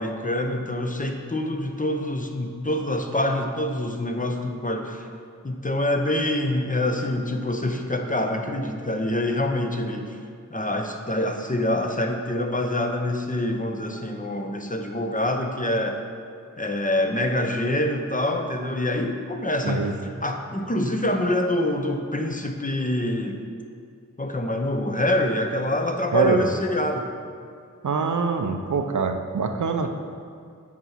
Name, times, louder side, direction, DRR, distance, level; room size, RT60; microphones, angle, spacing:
voice 1, 0.0-5.0 5.4-10.2 10.5-16.0 16.6-19.9 20.2-23.4 24.2-27.1 29.8-29.9, left 1 dB, 25° left, 4 dB, 0.8 m, -26 dB
voice 2, 19.6-20.0 26.1-26.4 27.8-29.9, right 5 dB, 70° right, 5 dB, 0.6 m, -24 dB
8.5 x 4.6 x 5.7 m, 2.2 s
wide cardioid pair, 70°, 31 cm